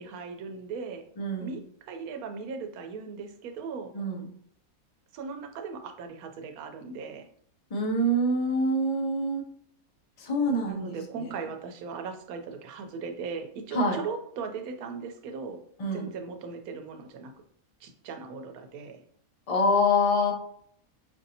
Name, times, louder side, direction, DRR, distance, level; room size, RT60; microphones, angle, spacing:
voice 1, 0.0-1.0 1.4-3.9 5.1-7.3 10.6-15.6 15.9-17.3 17.8-19.0, right 5 dB, 85° right, 6 dB, 1.1 m, -38 dB
voice 2, 1.2-1.6 3.9-4.3 7.7-9.4 10.2-10.9 13.7-14.0 15.8-16.1 19.5-20.3, left 1 dB, 40° left, 1 dB, 0.5 m, -25 dB
5.2 x 2.6 x 2.7 m, 0.65 s
omnidirectional pair, 1.5 m